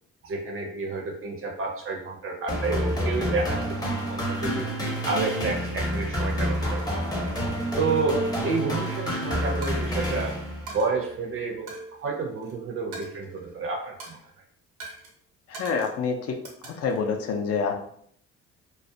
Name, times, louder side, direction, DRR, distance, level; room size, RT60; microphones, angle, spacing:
voice 1, 0.2-4.7 5.0-6.9 7.8-10.4 10.7-14.2, right 3 dB, 45° right, 3 dB, 0.5 m, -30 dB
sound 1, 2.5-10.8, equal, 15° left, 0.6 m, -28 dB
Coin (dropping), 8.8-9.0 9.6-10.2 10.7-10.9 11.7-12.5 12.9-13.6 14.0-14.3 14.8-15.1 15.5-16.0 16.4-17.1, right 3 dB, 85° right, 0.8 m, -43 dB
voice 2, 15.5-16.4 16.6-17.7, left 5 dB, 55° left, 5 dB, 0.5 m, -27 dB
2.3 x 2.1 x 2.6 m, 0.66 s
cardioid pair, 90°, 30 cm